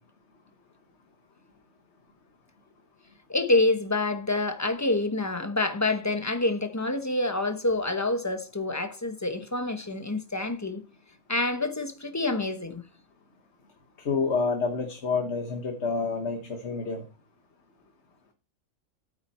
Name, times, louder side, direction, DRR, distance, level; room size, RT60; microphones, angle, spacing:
voice 1, 3.3-10.8 11.3-12.8, left 2 dB, 15° left, 0.9 m, -27 dB
voice 2, 14.0-17.0, left 4 dB, 60° left, 1.5 m, -28 dB
11.0 x 8.9 x 4.3 m
omnidirectional pair, 1.4 m